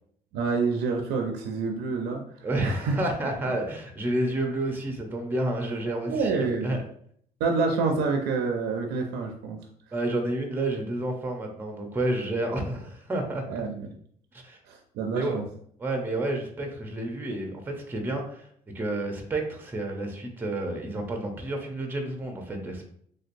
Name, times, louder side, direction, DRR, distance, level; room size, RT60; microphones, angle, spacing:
voice 1, 0.3-2.2 2.6-3.0 6.1-6.8 7.4-9.6 13.5-13.9 14.7-15.4, right 4 dB, 80° right, 3 dB, 0.4 m, -27 dB
voice 2, 2.4-6.8 9.9-13.4 14.3-14.6 15.1-15.4 15.8-18.5 18.7-22.9, right 1 dB, 10° right, 3 dB, 0.6 m, -30 dB
3.2 x 2.8 x 2.5 m, 0.64 s
cardioid pair, 110°, 17 cm